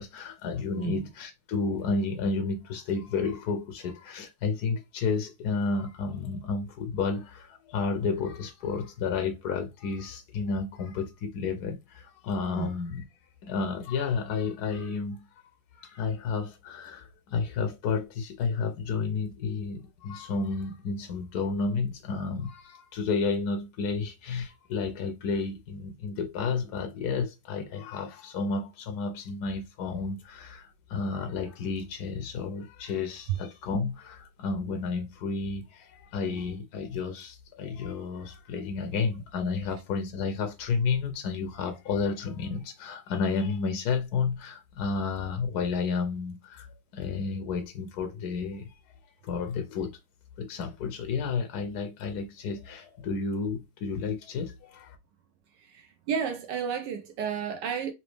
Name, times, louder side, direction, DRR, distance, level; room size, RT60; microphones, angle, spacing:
voice 1, 0.0-13.0 13.4-15.3 15.8-46.7 46.9-48.7 49.2-49.9 50.4-55.0, left 4 dB, 70° left, 0.9 m, -31 dB
voice 2, 55.6-57.9, right 7 dB, 75° right, 1.0 m, -32 dB
4.0 x 2.8 x 3.2 m
omnidirectional pair, 2.3 m